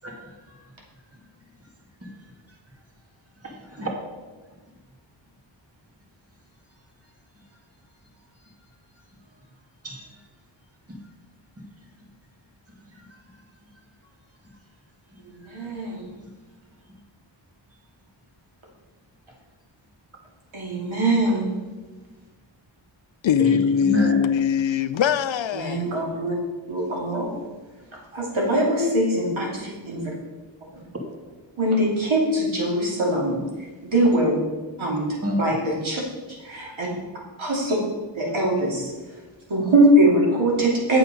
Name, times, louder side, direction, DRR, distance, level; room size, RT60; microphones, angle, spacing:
voice 1, 0.0-0.7 2.0-2.3 3.4-3.9 9.8-10.0 10.9-11.0 12.9-13.2 15.5-15.7 23.4-24.2 35.2-35.4 37.7-37.8, left 1 dB, 30° right, 2.1 m, -29 dB
voice 2, 15.3-16.1 20.5-21.5 25.5-26.3 26.7-27.3 28.1-30.0 30.7-30.8 31.6-34.4 34.8-35.1 35.4-35.6 35.8-36.0 36.3-36.9 37.4-37.8 38.1-38.9 39.5-41.0, right 1 dB, 80° right, 2.8 m, -22 dB
voice 3, 23.2-25.9, left 8 dB, 70° left, 0.6 m, -22 dB
8.5 x 7.4 x 5.3 m
wide cardioid pair, 90°, 47 cm